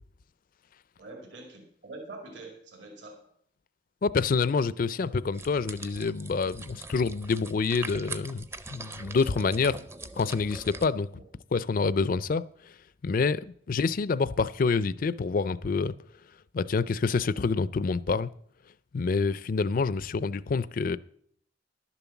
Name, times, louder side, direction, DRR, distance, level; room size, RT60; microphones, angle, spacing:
voice 1, 1.0-3.3 4.8-5.0 11.1-11.2 19.6-19.7, right 2 dB, 70° right, 2.3 m, -45 dB
voice 2, 4.0-9.8 10.2-11.1 11.5-12.4 13.0-15.9 16.5-18.3 18.9-21.0, left 4 dB, 45° left, 0.4 m, -27 dB
sound 1, 5.3-10.9, right 2 dB, 15° right, 0.5 m, -42 dB
11.5 x 7.1 x 7.0 m
head